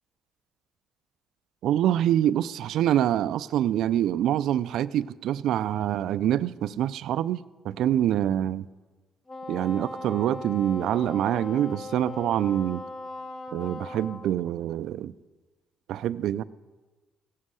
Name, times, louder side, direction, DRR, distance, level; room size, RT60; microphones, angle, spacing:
voice 1, 1.6-7.4 7.6-8.6 9.5-12.8 13.5-15.1 15.9-16.4, right 11 dB, 75° right, 0.4 m, -25 dB
Wind instrument woodwind instrument, 9.3-14.3, left 2 dB, 40° left, 1.5 m, -39 dB
16.5 x 7.5 x 6.3 m
cardioid pair, 80°, 0 cm